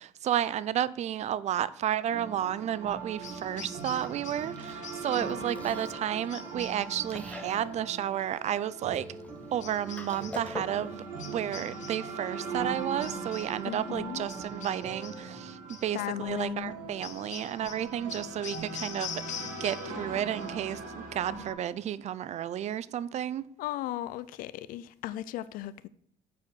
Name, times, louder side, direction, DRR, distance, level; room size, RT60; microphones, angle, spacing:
voice 1, 0.0-9.1 9.5-23.5, right 10 dB, 50° right, 0.5 m, -32 dB
sound 1, 2.1-21.5, right 4 dB, 75° right, 2.2 m, -40 dB
Chewing mastication, 3.1-11.0, left 2 dB, 10° left, 1.1 m, -47 dB
sound 2, 3.2-4.5 4.8-5.4 6.3-7.2 9.6-10.5 11.2-12.1 13.0-13.6 14.3-15.3 15.7-15.9 17.0-20.0 20.3-20.8, left 8 dB, 55° left, 0.9 m, -45 dB
voice 2, 13.7-14.3 15.9-16.7 23.6-25.9, left 12 dB, 75° left, 0.5 m, -36 dB
7.0 x 4.8 x 6.2 m
supercardioid pair, 80°, 15 cm